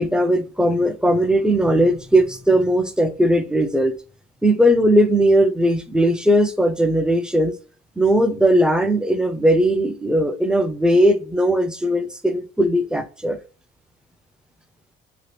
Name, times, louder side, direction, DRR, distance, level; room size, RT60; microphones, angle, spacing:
voice 1, 0.0-4.0 4.4-7.5 8.0-13.4, right 1 dB, 5° right, 0.5 m, -18 dB
2.8 x 2.2 x 3.3 m
cardioid pair, 110°, 17 cm